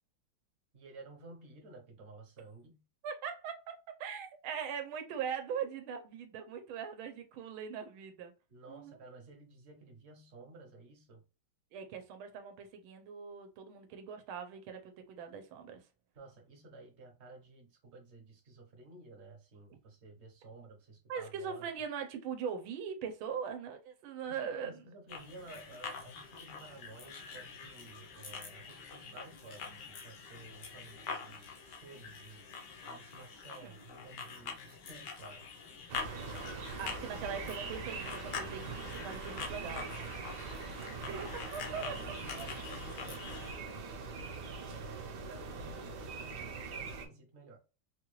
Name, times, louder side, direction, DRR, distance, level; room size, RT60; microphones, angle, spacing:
voice 1, 0.7-2.8 8.5-11.2 16.1-21.7 24.2-35.4 35.9-36.7 40.8-44.3 44.7-47.6, right 3 dB, 50° right, 0.8 m, -53 dB
voice 2, 3.0-3.7 4.0-8.3 8.7-9.0 11.7-15.8 21.1-24.8 33.6-33.8 36.8-39.9 41.1-41.9 42.4-42.5, right 7 dB, 85° right, 1.5 m, -41 dB
sound 1, 25.1-43.5, left 5 dB, 65° left, 1.3 m, -45 dB
sound 2, 35.9-47.1, right 4 dB, 65° right, 1.3 m, -42 dB
4.2 x 2.3 x 3.0 m
omnidirectional pair, 2.2 m